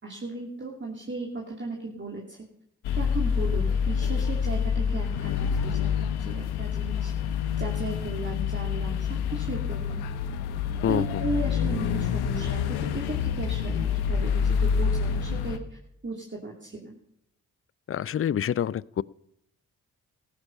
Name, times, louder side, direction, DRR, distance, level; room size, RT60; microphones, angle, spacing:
voice 1, 0.0-2.5 3.0-7.1 7.6-10.1 10.9-15.8 16.0-16.9, right 3 dB, 30° right, -1 dB, 2.8 m, -36 dB
sound 1, 2.8-15.6, left 7 dB, 85° left, 1.0 m, -27 dB
voice 2, 17.9-19.0, left 9 dB, 35° left, 23 dB, 0.5 m, -26 dB
15.0 x 12.5 x 5.5 m, 0.74 s
hypercardioid pair, 40°, 38 cm